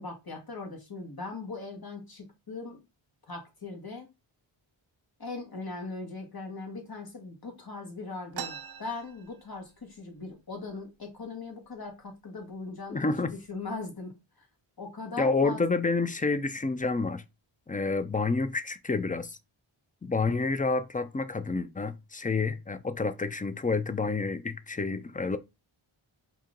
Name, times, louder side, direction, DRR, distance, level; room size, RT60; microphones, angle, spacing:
voice 1, 0.0-2.8 3.3-4.1 5.2-13.0 13.3-14.5 14.8-15.8, left 3 dB, 45° left, 1.7 m, -40 dB
sound 1, 8.3-9.9 10.3-10.4 10.6-11.3 11.9-12.0 12.7-12.9 13.4-13.8, right 8 dB, 50° right, 0.5 m, -42 dB
voice 2, 12.9-13.3 15.2-17.2 17.7-19.4 20.0-25.4, left 3 dB, 20° left, 0.3 m, -29 dB
4.3 x 2.8 x 3.7 m
wide cardioid pair, 80°, 49 cm